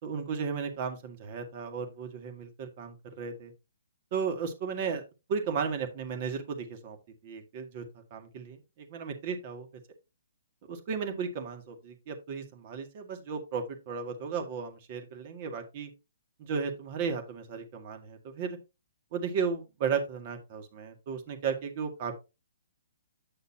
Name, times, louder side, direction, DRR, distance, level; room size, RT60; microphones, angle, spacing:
voice 1, 0.0-3.5 4.1-5.0 5.3-7.0 7.2-7.8 8.1-9.7 10.7-15.9 16.4-18.6 19.1-22.1, right 6 dB, 40° right, 5 dB, 2.0 m, -34 dB
9.3 x 6.5 x 2.8 m, 0.26 s
figure-of-eight pair, 130°, 0 cm